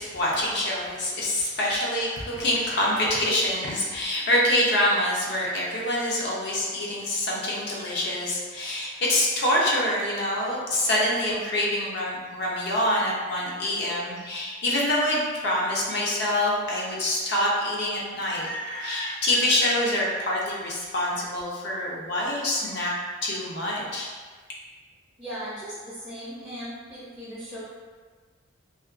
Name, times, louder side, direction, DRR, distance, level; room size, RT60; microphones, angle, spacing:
voice 1, 0.0-22.9 23.2-24.1, left 1 dB, 55° left, -4 dB, 0.5 m, -26 dB
voice 2, 25.2-27.6, equal, 10° right, -13 dB, 0.5 m, -37 dB
2.4 x 2.2 x 2.3 m, 1.5 s
head